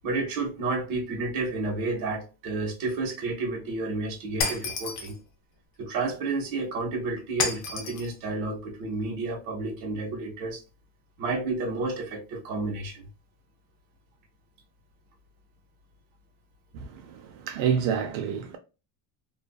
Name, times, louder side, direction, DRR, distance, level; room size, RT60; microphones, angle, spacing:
voice 1, 0.0-5.2 5.8-10.6 11.2-13.0, right 3 dB, 45° right, 0.9 m, -31 dB
Shatter, 4.4-5.2 7.4-8.1, left 4 dB, 45° left, 0.5 m, -30 dB
voice 2, 16.7-18.6, right 7 dB, 80° right, 0.6 m, -28 dB
2.4 x 2.4 x 2.2 m
cardioid pair, 175°, 46 cm